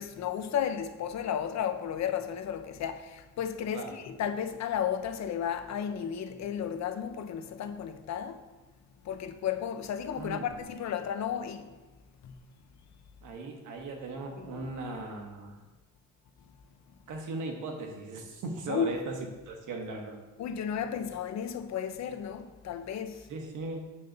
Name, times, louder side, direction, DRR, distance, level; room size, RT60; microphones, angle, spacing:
voice 1, 0.0-8.5 9.0-11.8 12.2-12.4 14.4-14.7 18.7-19.0 20.4-23.3, left 8 dB, 65° left, 0.8 m, -33 dB
voice 2, 10.2-10.5 13.2-15.6 17.1-19.2 19.5-20.2 23.3-23.8, right 3 dB, 80° right, 1.4 m, -38 dB
7.6 x 3.9 x 6.6 m
cardioid pair, 90°, 30 cm